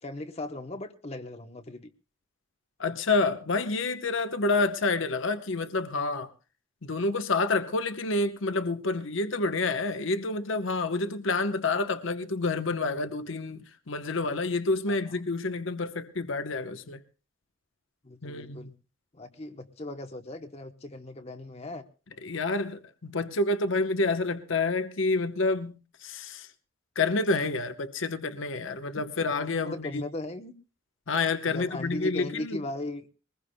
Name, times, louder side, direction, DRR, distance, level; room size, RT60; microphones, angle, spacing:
voice 1, 0.0-1.9 14.9-15.0 18.0-18.7 19.1-21.8 29.0-29.1 29.6-30.5 31.4-33.1, left 1 dB, 30° left, 0.9 m, -38 dB
voice 2, 2.8-6.3 6.8-17.0 18.2-18.7 22.2-26.5 27.0-30.0 31.1-32.6, left 3 dB, 70° left, 0.9 m, -28 dB
22.0 x 20.5 x 2.2 m
head